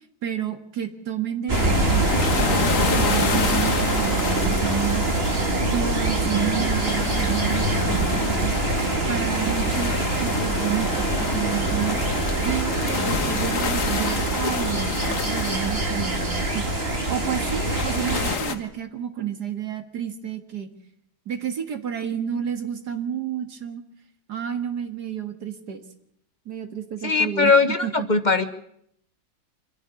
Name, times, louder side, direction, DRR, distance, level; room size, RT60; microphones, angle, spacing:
voice 1, 0.2-5.1 5.7-8.5 9.1-12.0 12.4-20.7 21.3-23.8 24.3-25.8 26.5-27.5 27.8-28.1, right 9 dB, 75° right, 8 dB, 2.4 m, -30 dB
sound 1, 1.5-18.6, left 6 dB, 55° left, 1.7 m, -30 dB
sound 2, 1.5-18.4, right 2 dB, 35° right, 2.7 m, -24 dB
voice 2, 27.0-28.4, left 4 dB, 30° left, 9 dB, 1.3 m, -20 dB
25.5 x 11.0 x 9.6 m, 0.71 s
omnidirectional pair, 1.8 m